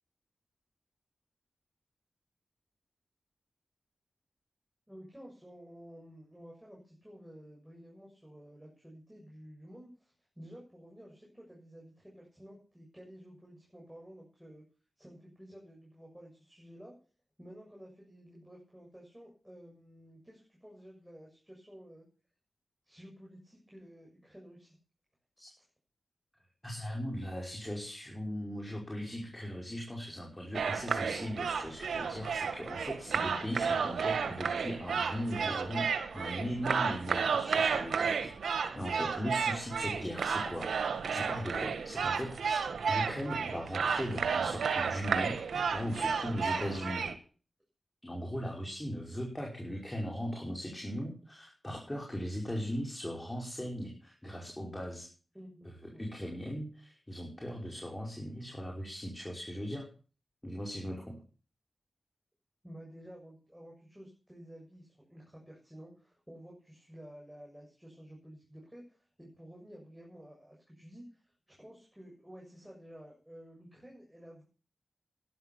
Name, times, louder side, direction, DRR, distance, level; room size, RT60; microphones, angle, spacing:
voice 1, 4.9-14.6 15.0-16.9 17.4-22.1 22.8-24.8 25.6-25.7 55.3-56.1 62.6-74.4, equal, 5° right, -2 dB, 7.2 m, -52 dB
voice 2, 26.6-38.3 38.7-40.7 41.1-42.6 42.9-45.4 45.7-47.1 48.0-55.1 56.0-59.9 60.4-61.2, equal, 20° left, -1 dB, 5.4 m, -38 dB
sound 1, 30.5-47.1, right 6 dB, 90° right, 1.6 m, -32 dB
12.5 x 11.5 x 7.2 m, 0.38 s
cardioid pair, 50°, 0 cm